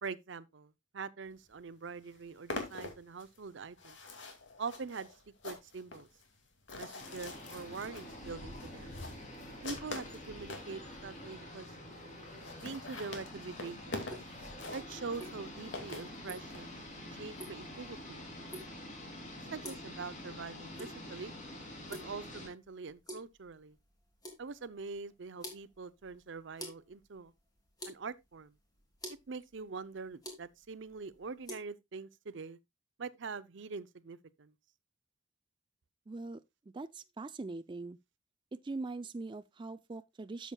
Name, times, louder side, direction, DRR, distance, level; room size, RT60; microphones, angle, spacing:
voice 1, 0.0-4.0 4.6-5.1 5.4-6.1 6.7-9.0 9.6-11.7 12.6-14.1 14.7-16.8 17.2-18.2 19.5-21.3 21.9-23.8 24.4-27.3 27.9-28.5 29.3-32.6 33.0-34.5, right 4 dB, 70° right, 0.6 m, -44 dB
sound 1, 1.5-1.6 1.9-10.7 11.3-11.4 11.6-11.7 11.9-12.0 12.3-16.6, left 3 dB, 65° left, 2.4 m, -45 dB
sound 2, 7.0-22.5, left 1 dB, 40° left, 3.2 m, -47 dB
sound 3, 14.1-31.6, equal, 20° left, 2.9 m, -51 dB
voice 2, 36.1-36.4 36.7-38.0 38.5-40.5, right 3 dB, 25° right, 0.4 m, -42 dB
12.5 x 7.1 x 2.3 m
head